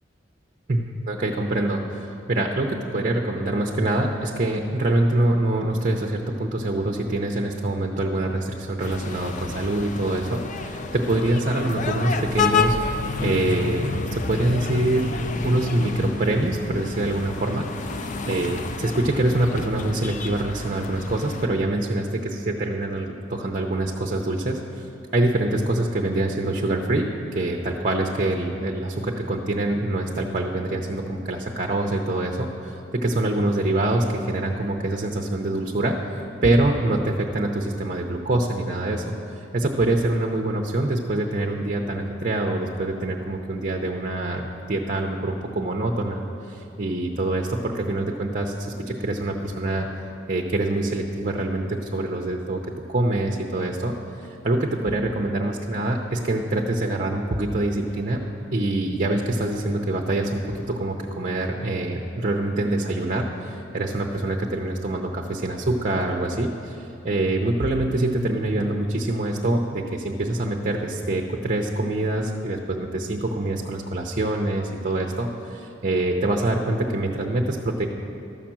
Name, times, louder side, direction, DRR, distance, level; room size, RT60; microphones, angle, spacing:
voice 1, 0.7-12.8 13.2-15.1 15.4-24.9 25.1-49.9 50.3-52.6 52.9-53.9 54.4-58.2 58.5-77.9, right 2 dB, 45° right, 1 dB, 0.7 m, -25 dB
sound 1, 8.8-21.5, left 4 dB, 45° left, 0.5 m, -29 dB
12.5 x 5.8 x 7.4 m, 3.0 s
head